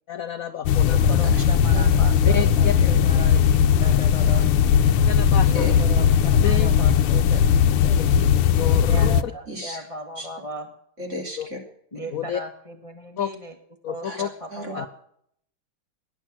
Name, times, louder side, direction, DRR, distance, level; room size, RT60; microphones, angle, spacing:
voice 1, 0.1-1.2 2.2-2.7 5.0-5.7 6.4-6.7 8.0-8.3 8.6-9.3 11.4-11.5 12.1-12.4 13.2-13.3 13.8-14.3 14.7-14.9, left 9 dB, 65° left, 10 dB, 0.8 m, -30 dB
sound 1, 0.7-9.2, left 8 dB, 80° left, 1.7 m, -18 dB
voice 2, 0.8-4.5 5.4-8.0 8.8-10.7 11.9-13.5 13.9-14.9, right 1 dB, 15° left, 4 dB, 1.6 m, -37 dB
voice 3, 1.7-2.5 2.8-3.0 5.5-5.7 9.5-9.8 10.2-10.3 11.0-11.6 14.0-14.2 14.5-14.9, left 1 dB, 30° right, 1 dB, 3.9 m, -34 dB
18.0 x 11.0 x 6.2 m, 0.67 s
omnidirectional pair, 2.4 m